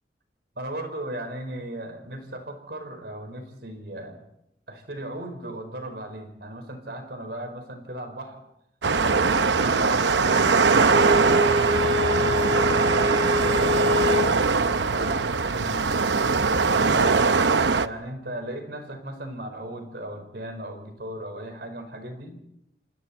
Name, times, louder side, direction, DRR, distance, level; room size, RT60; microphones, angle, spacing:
voice 1, 0.6-4.2 4.7-8.4 9.0-13.8 14.7-16.1 16.7-17.5 17.8-22.4, right 1 dB, 60° right, 6 dB, 5.0 m, -37 dB
sound 1, 8.8-17.9, right 4 dB, 80° right, 0.8 m, -21 dB
Bowed string instrument, 10.2-14.3, left 2 dB, 30° right, 2.7 m, -26 dB
29.0 x 27.5 x 4.4 m, 0.78 s
head